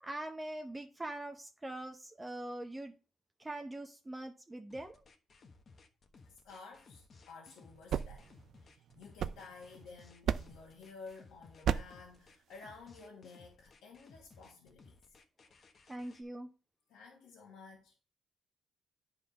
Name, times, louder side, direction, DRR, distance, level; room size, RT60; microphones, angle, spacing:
voice 1, 0.0-2.9 3.4-5.0 15.9-16.5, right 1 dB, 15° right, 0.7 m, -43 dB
sound 1, 4.7-16.2, left 4 dB, 45° left, 1.1 m, -60 dB
voice 2, 6.2-8.3 8.6-15.2 15.5-15.6 16.9-17.9, left 4 dB, 90° left, 1.5 m, -53 dB
sound 2, 7.6-9.8 10.2-10.7 11.6-12.1, right 9 dB, 70° right, 0.4 m, -36 dB
9.6 x 3.7 x 5.3 m
cardioid pair, 90°, 0 cm